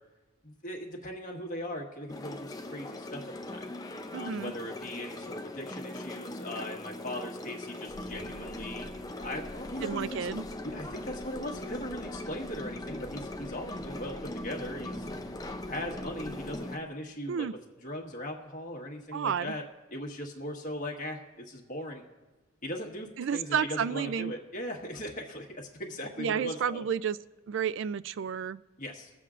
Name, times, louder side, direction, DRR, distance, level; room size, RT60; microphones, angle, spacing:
voice 1, 0.4-3.7 4.1-8.9 9.2-10.2 10.7-15.1 15.7-17.5 17.8-19.6 19.9-22.0 22.6-26.8 28.8-29.1, left 1 dB, 40° left, 1 dB, 1.4 m, -39 dB
sound 1, 2.1-16.8, left 1 dB, 15° left, 0.5 m, -40 dB
voice 2, 4.1-4.5 9.8-10.5 17.3-17.5 19.1-19.5 23.2-24.3 26.2-27.2 27.5-28.6, right 7 dB, 60° right, 17 dB, 0.3 m, -31 dB
sound 2, 7.9-16.6, equal, 40° right, 2.3 m, -48 dB
22.5 x 7.6 x 2.5 m, 1.2 s
head